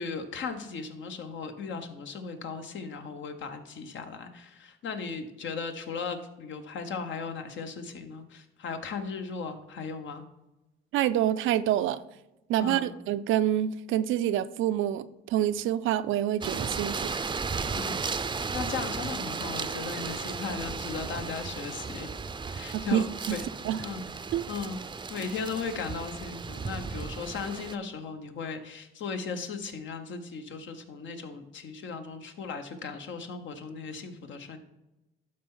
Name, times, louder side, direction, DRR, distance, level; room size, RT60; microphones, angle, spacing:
voice 1, 0.0-10.2 12.6-12.9 17.6-18.1 18.5-22.1 22.5-23.0 23.3-23.4 23.8-24.1 24.5-24.8 25.1-34.6, left 5 dB, 70° left, 7 dB, 1.1 m, -37 dB
voice 2, 10.9-12.0 12.5-17.1 22.7-23.4 23.6-23.8 24.3-24.4, right 11 dB, 80° right, 13 dB, 0.5 m, -27 dB
sound 1, 16.4-27.8, right 4 dB, 25° right, 0.5 m, -35 dB
12.0 x 4.4 x 3.8 m, 0.96 s
cardioid pair, 90°, 20 cm